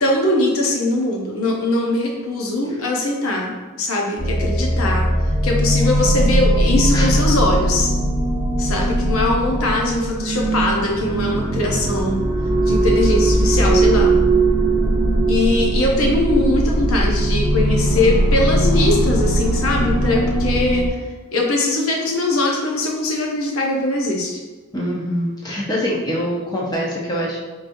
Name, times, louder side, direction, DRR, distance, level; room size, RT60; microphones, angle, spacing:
voice 1, 0.0-5.1 5.4-7.9 8.6-12.2 12.7-14.1 15.3-20.8 21.3-24.4, left 2 dB, 70° left, -1 dB, 0.8 m, -21 dB
sound 1, 4.2-20.9, right 1 dB, 55° right, 0.8 m, -19 dB
voice 2, 24.7-27.4, equal, 20° left, -4 dB, 0.7 m, -24 dB
4.8 x 3.0 x 2.6 m, 1.3 s
head